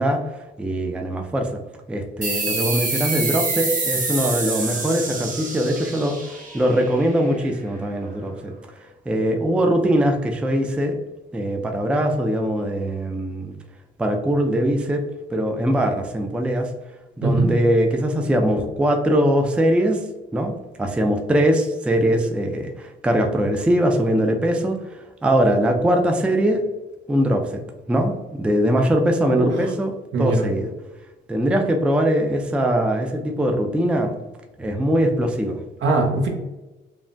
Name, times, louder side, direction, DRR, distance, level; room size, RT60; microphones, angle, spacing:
voice 1, 0.0-1.6 1.9-8.5 9.1-11.0 11.3-13.5 14.0-15.1 15.3-16.7 17.2-20.0 20.3-26.7 27.1-27.6 27.9-29.9 30.2-30.7 31.3-34.2 34.6-35.6, equal, 5° right, 4 dB, 0.3 m, -21 dB
sound 1, 2.2-7.4, right 3 dB, 40° right, 0.8 m, -27 dB
voice 2, 17.2-17.5 29.3-29.5 30.1-30.5 35.8-36.3, right 3 dB, 70° right, 1 dB, 0.8 m, -20 dB
3.3 x 2.1 x 2.5 m, 1.1 s
cardioid pair, 90°, 20 cm